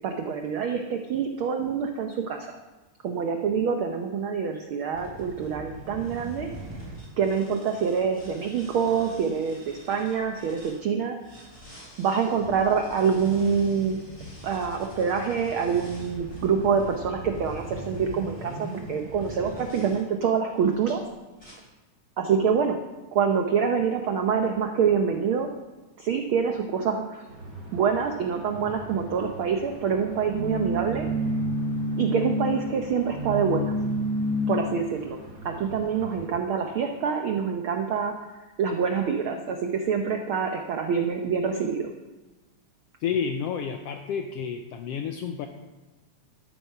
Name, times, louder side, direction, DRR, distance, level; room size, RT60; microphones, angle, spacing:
voice 1, 0.0-2.5 3.0-6.5 7.2-11.2 12.0-14.0 14.4-21.0 21.4-21.5 22.2-22.8 23.1-25.5 26.0-27.3 27.7-31.1 32.0-33.8 34.5-35.2 35.4-38.3 38.6-41.9, right 6 dB, 80° right, 4 dB, 1.1 m, -26 dB
sound 1, 4.9-10.8 11.2-20.0 20.7-21.0 21.4-21.5, right 1 dB, 10° left, 4.0 m, -42 dB
sound 2, 27.3-36.3, equal, 40° right, 3.4 m, -31 dB
voice 2, 43.0-45.5, left 7 dB, 80° left, 5 dB, 1.4 m, -30 dB
12.5 x 9.0 x 5.7 m, 1.2 s
omnidirectional pair, 3.4 m